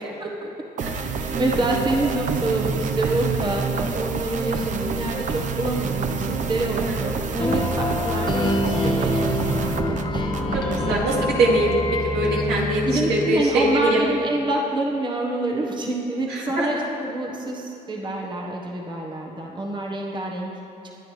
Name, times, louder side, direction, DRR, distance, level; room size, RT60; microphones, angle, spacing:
voice 1, 0.2-0.5 0.9-11.0 12.8-20.5, right 1 dB, 25° right, -1 dB, 1.3 m, -27 dB
sound 1, 0.8-11.3, right 5 dB, 45° right, 0.8 m, -27 dB
sound 2, 7.4-14.0, left 2 dB, 30° left, 1.2 m, -26 dB
voice 2, 10.5-11.7 12.1-12.8 13.1-14.1 16.3-16.8, right 2 dB, 75° right, -3 dB, 2.8 m, -22 dB
21.5 x 9.3 x 3.3 m, 2.7 s
cardioid pair, 110°, 17 cm